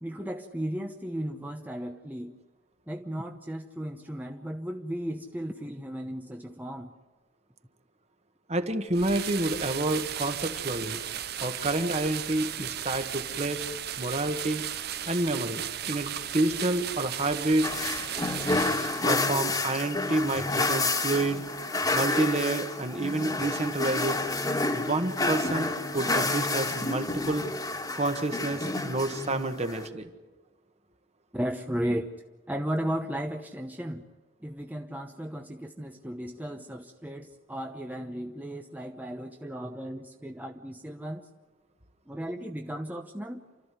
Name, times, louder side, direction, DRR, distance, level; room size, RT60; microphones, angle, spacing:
voice 1, 0.0-2.3 2.9-6.9 31.3-32.1 32.5-34.0 34.4-41.3 42.1-43.4, equal, 10° right, 0.9 m, -35 dB
voice 2, 8.5-11.0 11.4-13.7 14.0-14.6 15.1-17.7 19.0-21.4 21.9-24.2 24.7-27.5 27.9-30.1, right 2 dB, 35° right, 1.6 m, -29 dB
sound 1, 8.9-19.3, right 10 dB, 60° right, 1.0 m, -35 dB
sound 2, 17.6-29.9, left 2 dB, 20° left, 1.9 m, -29 dB
29.0 x 13.5 x 9.5 m
head